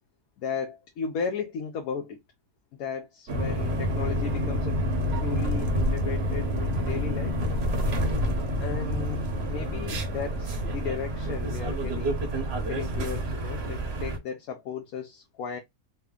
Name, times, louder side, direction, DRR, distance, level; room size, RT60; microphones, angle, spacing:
voice 1, 0.4-2.2 2.8-4.8 5.1-7.4 8.6-12.2 12.7-15.6, left 6 dB, 70° left, 1.0 m, -35 dB
sound 1, 3.3-14.2, equal, 50° right, 0.9 m, -28 dB
3.3 x 2.1 x 3.6 m
omnidirectional pair, 1.7 m